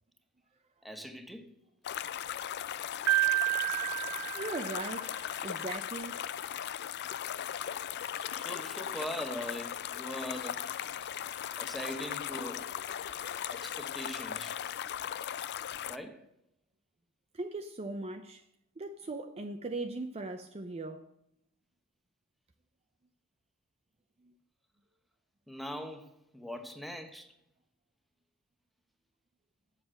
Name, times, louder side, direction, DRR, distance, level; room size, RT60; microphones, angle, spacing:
voice 1, 0.8-1.5 8.3-10.7 11.6-12.7 13.5-14.6 15.9-16.3 25.5-27.3, equal, ahead, 1.0 m, -41 dB
sound 1, 1.8-16.0, left 10 dB, 50° left, 0.4 m, -38 dB
Piano, 3.1-5.2, right 22 dB, 70° right, 0.5 m, -30 dB
voice 2, 4.3-5.2 5.4-6.2 17.3-18.4 18.8-21.0 24.2-24.3, right 2 dB, 30° right, 0.5 m, -39 dB
8.1 x 7.2 x 7.6 m
head